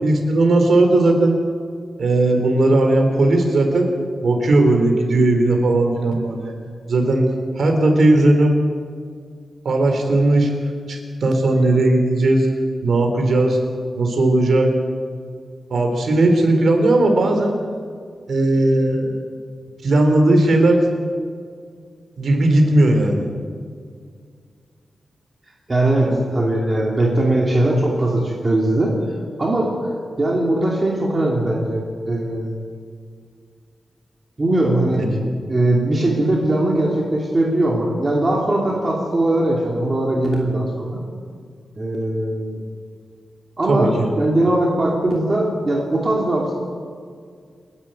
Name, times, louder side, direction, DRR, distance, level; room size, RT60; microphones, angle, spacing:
voice 1, 0.0-1.4 2.0-3.9 4.2-6.5 6.9-7.3 7.6-8.6 9.6-10.5 10.9-12.5 12.8-13.6 14.0-14.7 15.7-17.5 18.3-19.1 19.8-20.8 22.2-23.3 26.0-26.2 35.0-35.1 43.7-44.1, right 2 dB, 60° right, 3 dB, 3.9 m, -17 dB
voice 2, 25.7-28.9 29.4-29.7 30.2-32.6 34.4-35.1 35.5-41.0 41.8-42.6 43.6-46.5, right 1 dB, 25° right, -2 dB, 2.7 m, -20 dB
29.0 x 11.0 x 9.1 m, 2.1 s
wide cardioid pair, 175°, 0 cm